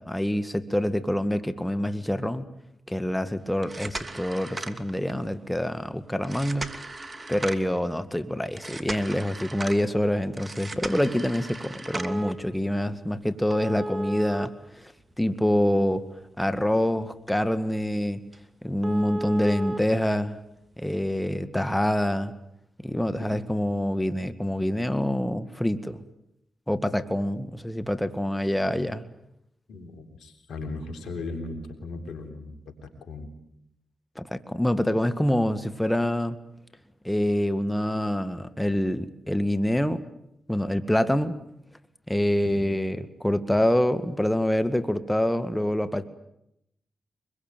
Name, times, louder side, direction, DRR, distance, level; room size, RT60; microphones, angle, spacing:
voice 1, 0.0-2.5 2.9-6.7 7.3-14.9 15.2-16.0 16.4-18.2 18.6-20.4 20.8-22.3 22.8-26.0 26.7-29.0 34.2-36.4 37.0-40.0 40.5-41.4 42.1-46.0, left 1 dB, 10° left, 11 dB, 1.8 m, -26 dB
sound 1, 3.5-5.3 6.2-7.8 8.6-9.8 10.4-12.3 13.5-15.4 15.8-15.9 16.4-16.5 17.0-17.1 17.4-17.5 17.9-18.0 18.3-18.4 18.8-19.8 20.9-21.0, right 2 dB, 30° right, 2.7 m, -35 dB
voice 2, 29.7-33.3 42.6-42.7, left 3 dB, 80° left, 6 dB, 3.8 m, -37 dB
24.5 x 22.5 x 9.2 m, 0.80 s
supercardioid pair, 40°, 0 cm